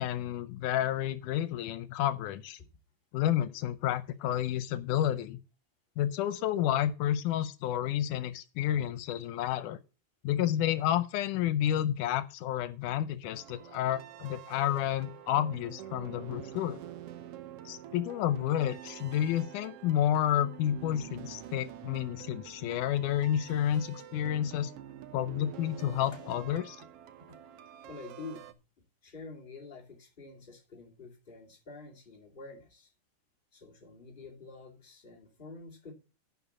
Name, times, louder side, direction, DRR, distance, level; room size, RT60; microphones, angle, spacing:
voice 1, 0.0-2.6 3.1-5.4 6.0-9.8 10.2-16.8 17.7-24.7 25.1-26.8, left 11 dB, 85° left, 2.2 m, -30 dB
sound 1, 13.2-28.5, right 11 dB, 70° right, 1.4 m, -47 dB
voice 2, 27.8-28.5 29.0-32.9 33.5-35.9, left 3 dB, 15° left, 2.2 m, -48 dB
11.0 x 4.9 x 7.0 m
omnidirectional pair, 3.6 m